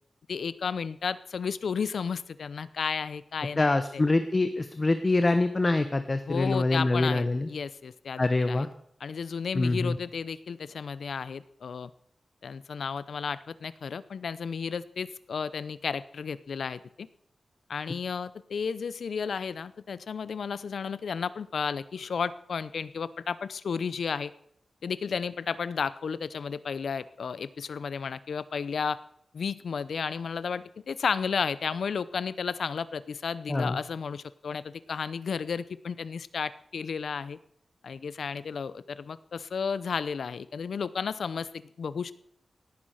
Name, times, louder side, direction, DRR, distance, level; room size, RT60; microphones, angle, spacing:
voice 1, 0.3-4.0 6.2-8.7 9.0-11.9 12.4-17.1 17.7-24.3 24.8-29.0 29.3-37.4 37.8-42.1, left 6 dB, 80° left, 17 dB, 0.7 m, -33 dB
voice 2, 3.6-7.5 8.2-8.7 9.5-10.0 33.5-33.8, left 2 dB, 25° left, 10 dB, 0.9 m, -25 dB
18.0 x 9.8 x 6.4 m, 0.68 s
wide cardioid pair, 145°, 0 cm